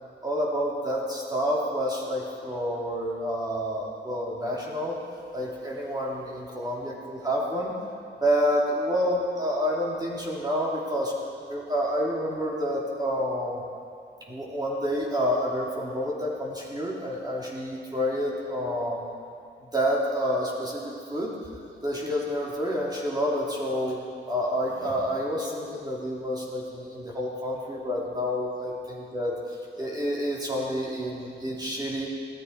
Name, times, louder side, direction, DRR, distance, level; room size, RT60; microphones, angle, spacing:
voice 1, 0.2-5.0 5.3-7.7 8.2-11.1 11.5-13.6 14.3-19.0 19.7-20.8 21.1-21.3 21.8-24.0 24.3-29.3 29.8-32.1, equal, 20° right, -4 dB, 2.9 m, -28 dB
16.5 x 13.0 x 4.7 m, 2.3 s
cardioid pair, 100°, 19 cm